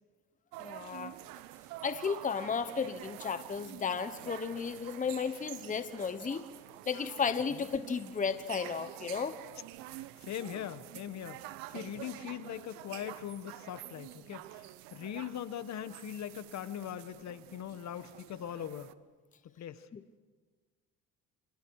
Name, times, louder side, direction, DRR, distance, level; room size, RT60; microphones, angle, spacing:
sound 1, 0.5-18.9, right 16 dB, 90° right, 0.9 m, -48 dB
voice 1, 0.6-1.1 1.8-6.4 6.9-9.4 19.9-20.0, left 6 dB, 25° left, 11 dB, 1.0 m, -34 dB
voice 2, 9.9-11.4 11.7-18.9 19.6-19.9, left 10 dB, 55° left, 12 dB, 1.4 m, -41 dB
27.5 x 27.5 x 4.8 m, 1.4 s
cardioid pair, 95°, 33 cm